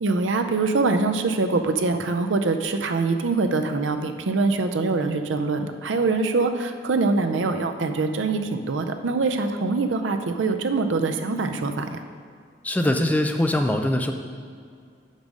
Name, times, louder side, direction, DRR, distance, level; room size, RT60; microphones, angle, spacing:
voice 1, 0.0-12.0, right 3 dB, 90° right, 7 dB, 0.5 m, -24 dB
voice 2, 12.6-14.1, left 1 dB, 10° left, 5 dB, 0.4 m, -22 dB
5.3 x 5.2 x 6.1 m, 2.2 s
head